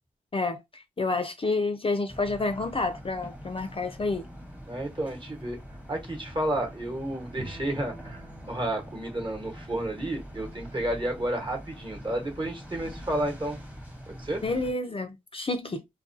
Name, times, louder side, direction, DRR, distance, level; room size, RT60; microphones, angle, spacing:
voice 1, 0.3-4.3 14.4-15.8, left 3 dB, 40° left, 0.5 m, -29 dB
sound 1, 2.1-14.7, equal, 10° right, 1.0 m, -44 dB
voice 2, 4.7-5.6 5.9-13.6 14.1-14.4, right 1 dB, 35° right, 1.0 m, -31 dB
Bowed string instrument, 7.4-10.7, right 3 dB, 70° right, 0.8 m, -49 dB
2.3 x 2.2 x 2.6 m
cardioid pair, 45°, 15 cm